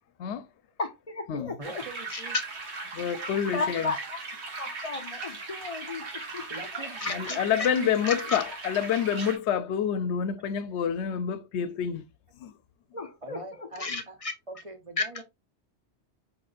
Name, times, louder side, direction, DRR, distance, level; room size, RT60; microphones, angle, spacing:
voice 1, 0.8-1.8 2.1-2.5 3.5-4.2 4.6-6.5 6.7-7.7 8.1-8.4 12.9-14.3 15.0-15.1, left 3 dB, 40° left, 0.6 m, -34 dB
voice 2, 1.6-2.3 6.5-7.9 13.2-14.2 14.5-15.2, right 2 dB, 35° right, 0.7 m, -43 dB
sound 1, 1.6-9.4, right 3 dB, 75° right, 1.5 m, -38 dB
voice 3, 2.9-3.9 7.1-12.0 12.4-12.5 13.9-14.0, left 8 dB, 85° left, 0.9 m, -28 dB
5.1 x 3.9 x 2.5 m
omnidirectional pair, 1.1 m